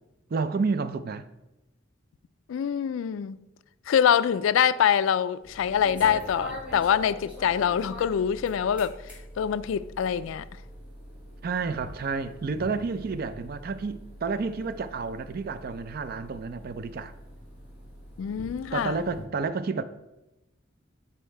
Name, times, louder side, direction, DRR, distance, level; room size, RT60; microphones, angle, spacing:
voice 1, 0.3-1.3 11.4-17.1 18.7-19.8, right 4 dB, 45° right, 0.4 m, -30 dB
voice 2, 2.5-3.4 3.9-9.0 9.4-10.4 18.2-19.0, left 8 dB, 70° left, 0.3 m, -24 dB
sound 1, 5.4-19.2, equal, 5° right, 2.0 m, -44 dB
8.3 x 4.3 x 4.5 m
head